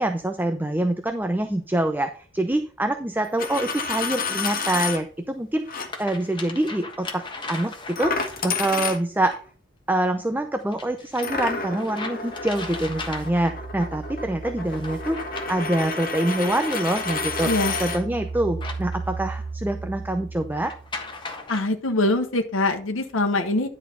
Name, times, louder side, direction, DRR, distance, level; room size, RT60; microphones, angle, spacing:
voice 1, 0.0-7.2 7.5-8.2 8.4-9.3 9.9-15.2 15.5-17.5 17.8-20.7, right 1 dB, 10° right, 7 dB, 0.6 m, -25 dB
Coin (dropping), 3.2-5.0 5.7-5.9 8.0-9.4 11.2-18.0, left 4 dB, 45° left, 1.6 m, -30 dB
sound 1, 3.2-3.3 4.9-5.0 5.6-8.8 10.7-13.6 14.6-15.8 16.3-19.5 20.5-21.6, left 3 dB, 25° left, 1.4 m, -38 dB
sound 2, 12.3-16.2 16.6-21.1, right 4 dB, 65° right, 0.7 m, -36 dB
voice 2, 17.4-17.8 21.5-23.7, left 2 dB, 80° left, 5 dB, 1.1 m, -23 dB
10.5 x 4.4 x 5.5 m, 0.41 s
head